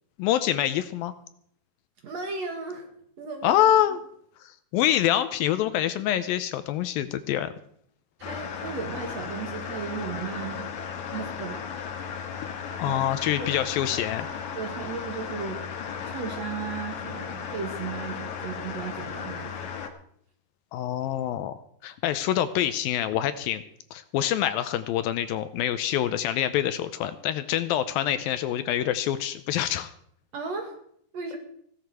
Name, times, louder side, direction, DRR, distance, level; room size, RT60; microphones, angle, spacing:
voice 1, 0.2-1.1 3.4-4.0 4.4-7.5 12.8-14.3 20.7-23.6 23.9-29.9, left 11 dB, 80° left, 12 dB, 2.3 m, -26 dB
voice 2, 2.0-2.9 3.2-3.6 8.2-10.7 11.1-11.7 12.9-13.1 13.3-13.5 14.5-15.6 16.1-19.7 30.3-30.8 31.1-31.4, right 5 dB, 50° right, 4 dB, 2.6 m, -35 dB
sound 1, 8.2-19.9, left 7 dB, 60° left, 2.4 m, -35 dB
16.5 x 12.5 x 4.8 m, 0.67 s
omnidirectional pair, 4.4 m